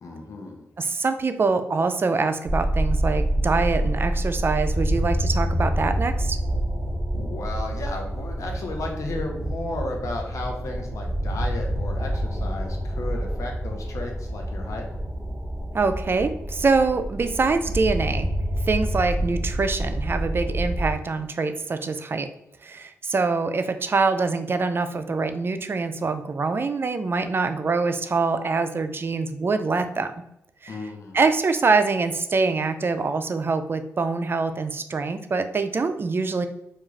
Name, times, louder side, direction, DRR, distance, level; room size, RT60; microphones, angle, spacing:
voice 1, 0.0-0.7 7.1-14.9 30.7-31.2, left 2 dB, 65° left, 2 dB, 0.7 m, -34 dB
voice 2, 0.8-6.4 15.7-18.3 18.7-22.3 22.6-30.1 30.6-30.8 31.1-36.5, right 4 dB, 40° right, 9 dB, 0.3 m, -24 dB
sound 1, 2.5-20.9, right 1 dB, 10° right, 0.8 m, -27 dB
2.3 x 2.3 x 3.1 m, 0.83 s
supercardioid pair, 45°, 6 cm